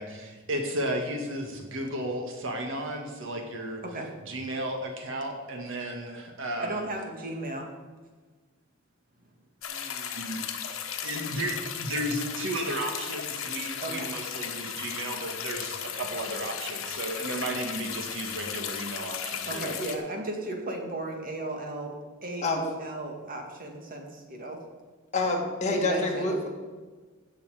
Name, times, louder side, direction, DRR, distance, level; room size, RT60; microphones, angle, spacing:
voice 1, 0.0-3.8 4.3-6.8 9.7-10.4 11.0-19.7, right 1 dB, 65° right, 3 dB, 1.7 m, -34 dB
voice 2, 6.6-7.7 13.8-14.1 19.4-24.6 25.7-26.5, right 2 dB, 45° right, 2 dB, 2.0 m, -35 dB
sound 1, 9.6-20.0, left 8 dB, 70° left, 1.2 m, -36 dB
voice 3, 25.1-26.5, left 2 dB, 35° left, 0 dB, 2.1 m, -27 dB
16.5 x 6.9 x 4.9 m, 1.4 s
head